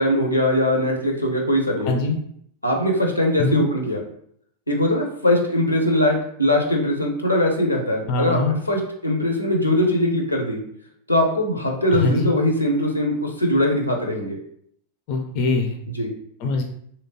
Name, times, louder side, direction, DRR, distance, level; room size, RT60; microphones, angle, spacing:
voice 1, 0.0-1.9 2.6-4.0 4.7-10.6 11.1-14.4 15.9-16.1, left 1 dB, 85° left, 2 dB, 0.6 m, -21 dB
voice 2, 1.8-2.2 3.4-3.7 8.1-8.5 11.9-12.3 15.1-15.8 16.4-16.6, left 3 dB, 45° left, 4 dB, 0.4 m, -22 dB
3.1 x 2.9 x 2.8 m, 0.67 s
figure-of-eight pair, 90°, 0 cm